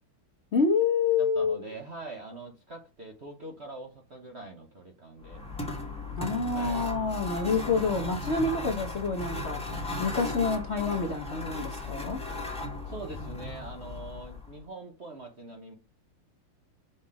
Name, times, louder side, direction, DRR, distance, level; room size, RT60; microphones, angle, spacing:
voice 1, 0.5-1.6 6.2-9.7 10.0-12.2, left 4 dB, 45° left, 0.9 m, -27 dB
voice 2, 1.2-5.4 6.4-6.9 12.9-15.7, right 2 dB, 40° right, 1.1 m, -43 dB
sound 1, 5.2-14.6, left 2 dB, 5° left, 1.7 m, -36 dB
5.8 x 5.6 x 4.8 m
omnidirectional pair, 2.4 m